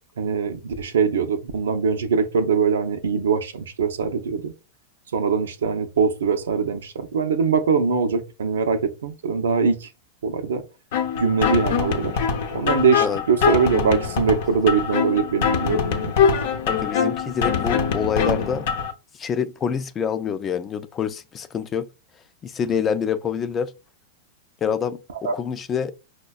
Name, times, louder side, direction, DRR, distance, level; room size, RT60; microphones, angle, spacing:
voice 1, 0.2-4.5 5.1-9.9 10.2-10.6 11.1-12.2 12.5-16.1 25.2-25.3, right 5 dB, 85° right, 0.5 m, -22 dB
sound 1, 10.9-18.9, left 6 dB, 65° left, 0.7 m, -23 dB
voice 2, 16.7-18.6 19.2-21.9 22.4-23.7 24.6-25.9, left 7 dB, 25° left, 0.4 m, -26 dB
5.3 x 2.2 x 2.3 m
hypercardioid pair, 115°, 0 cm